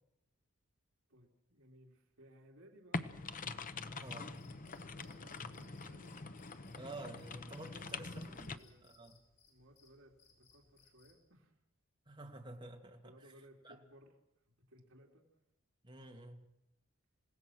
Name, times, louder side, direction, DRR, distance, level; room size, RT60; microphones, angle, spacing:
voice 1, 1.1-3.1 4.3-6.1 7.6-9.1 9.5-11.6 13.0-14.1 14.5-15.3, equal, 65° right, -2 dB, 3.1 m, -62 dB
sound 1, 2.9-8.6, left 3 dB, 40° left, 0.9 m, -44 dB
voice 2, 3.9-4.4 6.8-9.2 12.1-13.1 13.6-13.8 15.8-16.5, right 2 dB, 20° right, 2 dB, 2.4 m, -50 dB
Cricket, 4.0-11.2, left 5 dB, 55° left, 7.1 m, -68 dB
28.0 x 17.0 x 6.4 m, 0.85 s
head